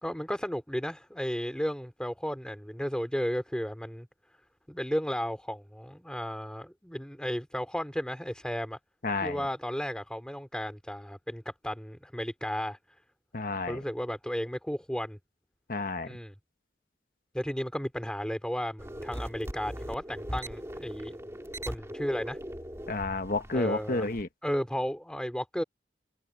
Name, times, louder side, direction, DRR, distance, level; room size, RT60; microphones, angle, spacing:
voice 1, 0.0-4.1 4.7-8.8 9.2-12.8 13.7-15.2 16.0-16.3 17.3-21.1 21.7-22.4 23.5-24.1 24.4-25.6, equal, 5° left, 2.9 m, -34 dB
voice 2, 9.0-9.5 13.3-13.8 15.7-16.2 22.9-24.3, left 2 dB, 50° left, 1.3 m, -31 dB
sound 1, 18.8-24.2, equal, 15° right, 2.3 m, -40 dB
head